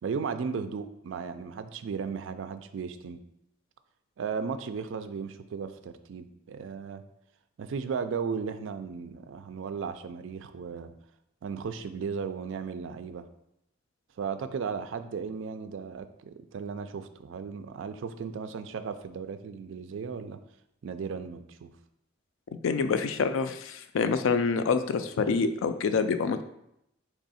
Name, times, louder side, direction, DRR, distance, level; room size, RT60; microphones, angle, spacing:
voice 1, 0.0-3.2 4.2-7.0 7.6-10.9 11.4-13.3 14.2-20.4 20.8-21.7, right 5 dB, 75° right, 10 dB, 0.3 m, -35 dB
voice 2, 22.6-26.4, left 5 dB, 85° left, 10 dB, 0.4 m, -26 dB
3.5 x 3.1 x 4.1 m, 0.79 s
head